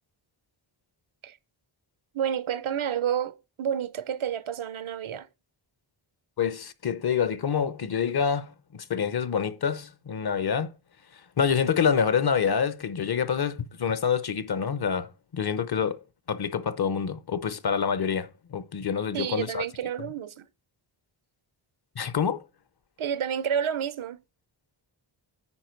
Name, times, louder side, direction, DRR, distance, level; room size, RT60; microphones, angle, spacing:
voice 1, 2.1-5.3 19.1-20.5 23.0-24.2, right 8 dB, 75° right, 0.8 m, -30 dB
voice 2, 6.4-10.7 11.4-16.0 16.3-19.6 22.0-22.4, left 7 dB, 50° left, 0.8 m, -27 dB
9.8 x 4.5 x 4.4 m
wide cardioid pair, 145°, 50 cm